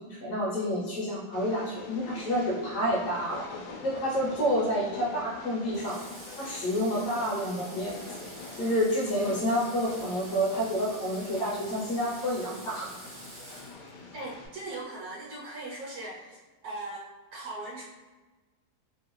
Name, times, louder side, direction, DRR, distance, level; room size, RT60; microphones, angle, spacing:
voice 1, 0.1-3.4 3.8-6.0 6.4-8.3 8.6-12.9, equal, 60° left, -6 dB, 1.1 m, -29 dB
Train, 1.3-14.5, left 3 dB, 85° left, 1.2 m, -45 dB
Water / Water tap faucet, 5.7-14.2, right 2 dB, 50° right, 0.5 m, -47 dB
voice 2, 14.1-17.1 17.3-17.8, right 2 dB, 70° right, -4 dB, 1.0 m, -39 dB
3.0 x 2.4 x 2.9 m, 1.2 s
omnidirectional pair, 1.8 m